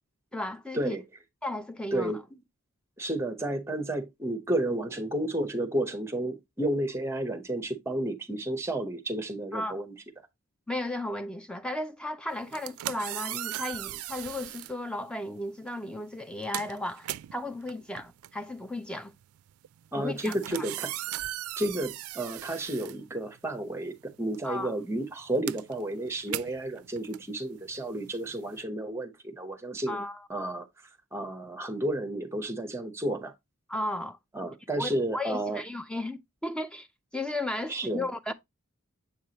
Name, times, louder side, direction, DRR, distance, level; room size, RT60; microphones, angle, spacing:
voice 1, 0.3-1.0 1.4-2.2 9.5-9.8 10.7-19.1 20.0-20.7 24.4-24.8 29.9-30.3 33.7-34.2 34.8-36.9 37.1-38.3, left 1 dB, 5° left, 0.4 m, -35 dB
voice 2, 1.9-2.2 3.0-9.9 19.9-21.2 21.6-30.0 30.3-30.7 31.1-33.3 34.3-35.6 37.7-38.1, right 1 dB, 10° right, 0.8 m, -32 dB
sound 1, 12.4-14.8 15.7-15.9 16.2-23.7 24.0-28.6, right 14 dB, 85° right, 0.3 m, -39 dB
7.4 x 4.7 x 2.8 m
head